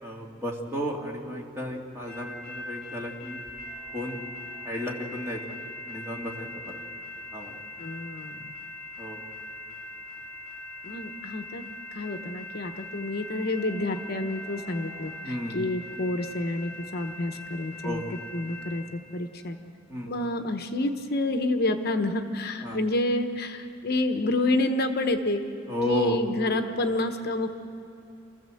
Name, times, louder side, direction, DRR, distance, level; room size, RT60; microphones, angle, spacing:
voice 1, 0.0-3.4 3.9-4.2 4.6-5.6 5.9-6.8 7.3-7.6 9.0-9.2 15.2-15.6 17.8-18.1 19.9-20.1 22.6-22.8 25.7-26.2, left 1 dB, 15° right, -1 dB, 2.3 m, -33 dB
sound 1, 2.1-18.8, left 1 dB, 5° left, 7.5 m, -41 dB
voice 2, 7.8-8.5 10.8-11.6 11.9-18.0 18.3-19.6 20.0-25.4 25.9-27.5, left 2 dB, 55° left, 7 dB, 1.0 m, -29 dB
28.5 x 14.5 x 7.7 m, 2.7 s
head